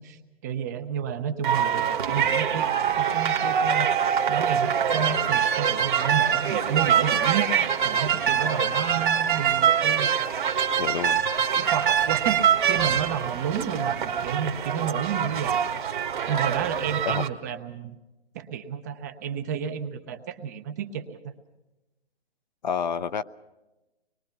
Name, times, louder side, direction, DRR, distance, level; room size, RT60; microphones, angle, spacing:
voice 1, 0.0-2.7 3.0-3.9 4.3-7.5 7.8-10.1 11.6-15.8 16.3-17.9 18.3-21.2, right 8 dB, 15° right, 8 dB, 0.7 m, -31 dB
sound 1, 1.4-17.3, right 8 dB, 50° right, 1.7 m, -24 dB
voice 2, 10.8-11.3 17.1-17.3 22.6-23.2, left 7 dB, 45° left, 13 dB, 0.7 m, -29 dB
25.0 x 22.0 x 5.8 m, 1.0 s
hypercardioid pair, 155°, 31 cm